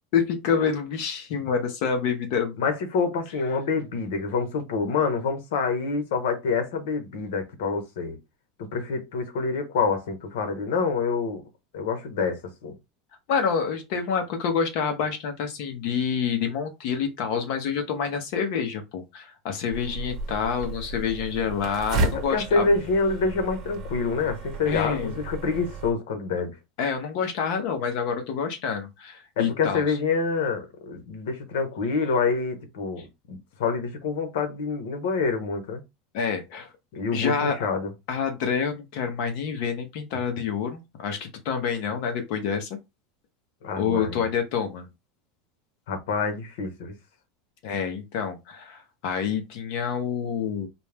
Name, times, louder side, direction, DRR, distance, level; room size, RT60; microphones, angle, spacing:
voice 1, 0.1-2.6 13.3-22.7 24.7-25.2 26.8-30.0 36.1-36.7 37.1-37.6 38.1-42.7 43.8-44.9 47.6-50.7, left 6 dB, 55° left, 0.8 m, -27 dB
voice 2, 2.6-8.2 8.7-11.4 11.7-12.7 22.3-26.6 29.4-35.8 36.9-37.9 43.6-44.3 45.9-46.9, left 4 dB, 80° left, 1.2 m, -27 dB
sound 1, 19.7-25.9, right 2 dB, 35° right, 0.8 m, -33 dB
4.3 x 2.1 x 3.5 m
supercardioid pair, 170°, 0 cm